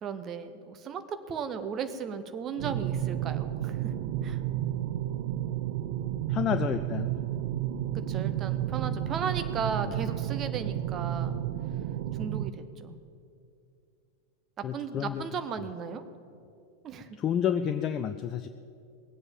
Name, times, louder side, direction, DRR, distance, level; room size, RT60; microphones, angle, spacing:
voice 1, 0.0-3.9 4.2-4.4 7.9-11.4 12.2-13.0 14.6-16.0 16.8-17.1, right 6 dB, 30° right, 10 dB, 1.0 m, -36 dB
sound 1, 2.6-12.5, right 12 dB, 50° right, 0.5 m, -31 dB
voice 2, 6.3-7.1 14.6-15.2 17.2-18.5, left 9 dB, 30° left, 9 dB, 0.4 m, -29 dB
19.0 x 7.9 x 7.4 m, 2.5 s
figure-of-eight pair, 90°, 0 cm